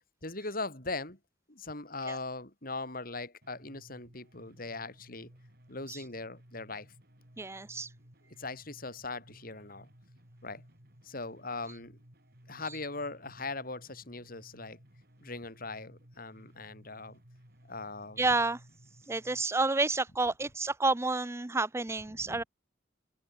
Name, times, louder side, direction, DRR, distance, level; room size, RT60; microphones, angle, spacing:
voice 1, 0.2-1.2 1.5-5.3 5.7-6.9 8.3-9.9 10.4-10.6 11.0-12.0 12.5-14.8 15.2-17.2 17.7-18.3 22.1-22.4, left 3 dB, 50° left, 6.2 m, -40 dB
sound 1, 3.4-19.4, equal, 55° right, 7.1 m, -58 dB
voice 2, 7.4-7.9 18.2-18.6 19.1-22.4, right 3 dB, 15° right, 0.5 m, -29 dB
open air
head